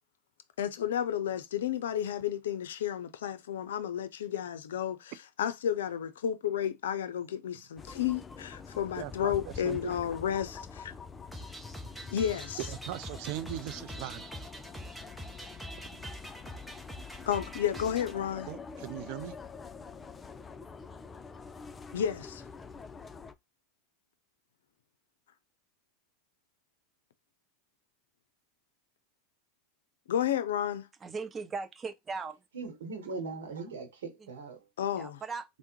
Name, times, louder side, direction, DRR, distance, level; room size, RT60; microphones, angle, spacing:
voice 1, 0.6-5.1 5.4-10.9 12.1-12.6 17.3-18.5 21.9-22.4 30.1-30.9 34.8-35.2, left 9 dB, 80° left, 0.5 m, -32 dB
sound 1, 7.8-23.3, left 5 dB, 20° left, 0.5 m, -46 dB
voice 2, 9.0-9.9 12.6-14.2 15.9-16.0 18.5-19.4, right 15 dB, 60° right, 0.4 m, -39 dB
sound 2, 11.3-18.1, equal, ahead, 1.0 m, -45 dB
voice 3, 31.0-32.4 34.2-34.3 35.0-35.6, right 4 dB, 25° right, 0.7 m, -38 dB
voice 4, 32.5-34.6, right 4 dB, 80° right, 1.0 m, -39 dB
3.5 x 2.1 x 3.0 m
hypercardioid pair, 95°, 0 cm